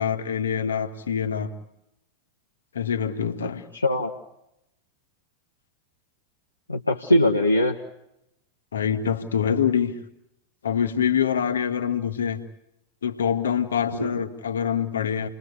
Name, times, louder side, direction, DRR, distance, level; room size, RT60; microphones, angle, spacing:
voice 1, 0.0-1.5 2.7-3.6 8.7-9.9 10.6-12.4 13.0-15.3, left 8 dB, 65° left, 6 dB, 2.1 m, -25 dB
voice 2, 3.4-4.2 6.7-7.8 14.0-14.2, left 1 dB, 80° left, 0 dB, 1.5 m, -22 dB
29.5 x 21.5 x 8.3 m, 0.84 s
figure-of-eight pair, 90°, 0 cm